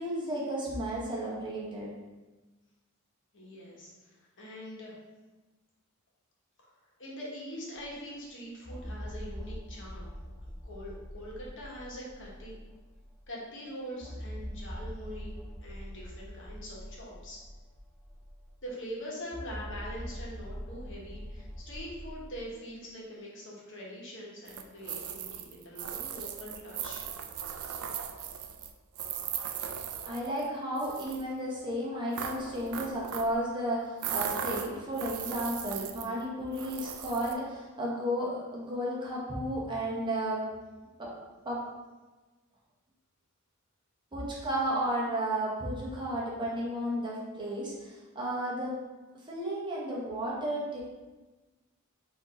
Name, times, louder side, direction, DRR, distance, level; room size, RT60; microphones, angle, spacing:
voice 1, 0.0-1.9 30.1-40.4 41.0-41.1 41.4-41.6 44.1-48.8 49.3-50.8, right 1 dB, 20° right, -5 dB, 1.0 m, -33 dB
voice 2, 3.3-4.9 7.0-10.1 10.6-12.5 13.3-15.3 15.6-17.4 18.6-27.1, equal, 60° left, -4 dB, 1.1 m, -43 dB
sound 1, 7.8-7.9 8.6-13.2 14.0-18.7 19.3-22.4, equal, 10° left, 0.3 m, -43 dB
sound 2, 24.5-30.5 30.8-31.2 32.1-33.4 34.0-36.2 36.5-37.3, right 8 dB, 70° right, 0.4 m, -38 dB
4.3 x 2.7 x 4.2 m, 1.2 s
head